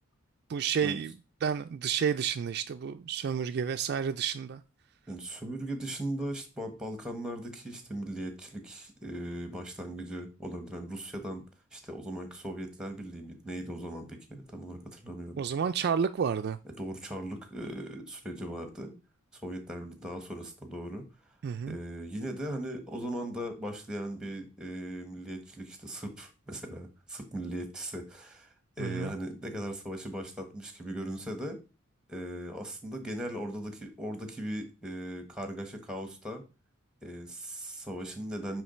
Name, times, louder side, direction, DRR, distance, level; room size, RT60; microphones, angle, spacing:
voice 1, 0.5-1.1 1.4-4.6 15.4-16.6 21.4-21.8 28.8-29.1, right 7 dB, 50° right, 0.3 m, -30 dB
voice 2, 5.1-11.4 11.7-15.4 16.8-18.9 19.3-21.0 21.7-31.6 32.1-36.4 37.0-38.6, right 1 dB, 5° right, 1.3 m, -38 dB
9.4 x 3.2 x 4.3 m
head